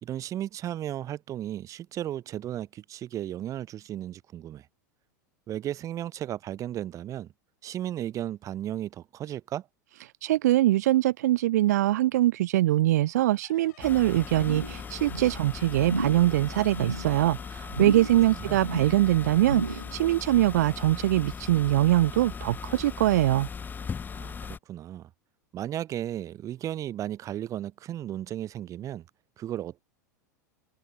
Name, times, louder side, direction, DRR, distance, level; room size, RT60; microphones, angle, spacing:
voice 1, 0.0-4.7 5.5-7.3 7.6-9.7 18.3-18.6 24.1-25.1 25.5-29.1 29.4-29.8, right 12 dB, 35° right, 2.5 m, -35 dB
voice 2, 10.2-23.5, right 15 dB, 60° right, 1.0 m, -23 dB
sound 1, 13.3-18.6, left 16 dB, 60° left, 5.2 m, -54 dB
sound 2, 13.8-24.6, left 6 dB, 20° left, 1.8 m, -39 dB
sound 3, 14.3-14.8 15.1-15.4 15.8-16.3 16.6-17.1 17.7-18.2 18.5-19.0 19.4-19.9 20.3-20.4, right 3 dB, 90° right, 0.8 m, -32 dB
open air
figure-of-eight pair, 90°, 10 cm